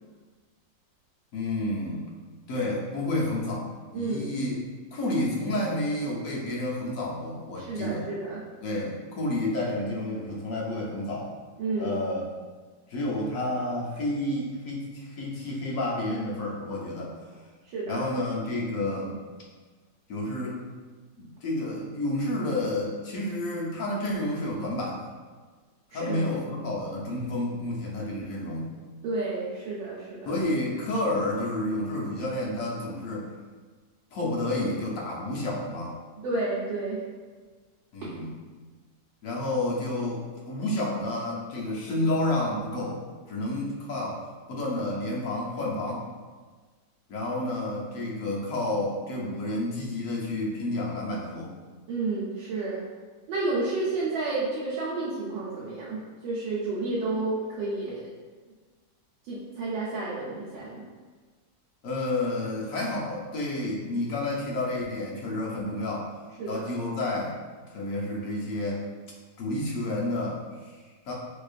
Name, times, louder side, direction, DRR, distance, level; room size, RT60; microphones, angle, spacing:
voice 1, 1.3-2.1 2.5-3.7 3.9-4.6 4.9-8.1 8.6-11.3 11.8-12.3 12.9-17.2 17.9-19.2 20.1-20.6 21.2-25.1 25.9-28.7 30.3-33.3 34.1-36.0 37.9-38.3 39.2-43.0 43.3-44.2 44.5-46.0 47.1-51.5 61.8-66.1 66.5-67.4 67.7-68.8 69.4-71.1, left 1 dB, 60° left, -4 dB, 0.9 m, -30 dB
voice 2, 3.9-4.3 7.6-8.4 11.6-12.0 17.7-18.0 25.9-26.1 29.0-30.3 36.2-37.0 51.9-52.8 53.3-58.1 59.3-60.8 66.4-66.7, right 3 dB, 85° right, -9 dB, 1.4 m, -31 dB
4.5 x 2.4 x 2.4 m, 1.4 s
omnidirectional pair, 1.9 m